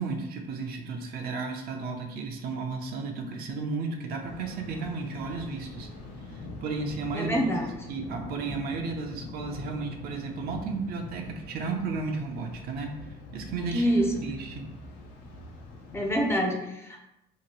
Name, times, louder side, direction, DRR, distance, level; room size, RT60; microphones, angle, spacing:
voice 1, 0.0-5.9 6.3-13.8 14.2-14.7, right 4 dB, 65° right, 3 dB, 0.5 m, -34 dB
Thunder, 4.2-16.4, left 2 dB, 80° left, 0.6 m, -43 dB
voice 2, 7.1-7.7 13.7-14.2 15.9-17.0, equal, 15° left, 1 dB, 0.5 m, -26 dB
2.9 x 2.5 x 2.9 m, 0.86 s
cardioid pair, 110°, 17 cm